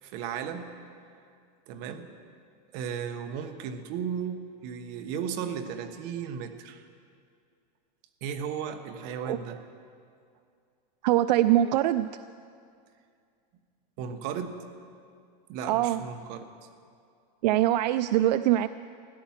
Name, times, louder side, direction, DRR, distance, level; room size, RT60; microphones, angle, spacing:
voice 1, 0.0-0.7 1.7-2.1 2.7-6.9 8.2-9.6 14.0-14.6 15.5-16.5, right 7 dB, 45° right, 7 dB, 1.2 m, -35 dB
voice 2, 11.0-12.1 15.7-16.0 17.4-18.7, right 13 dB, 80° right, 13 dB, 0.4 m, -23 dB
16.0 x 11.0 x 7.3 m, 2.3 s
supercardioid pair, 155°, 21 cm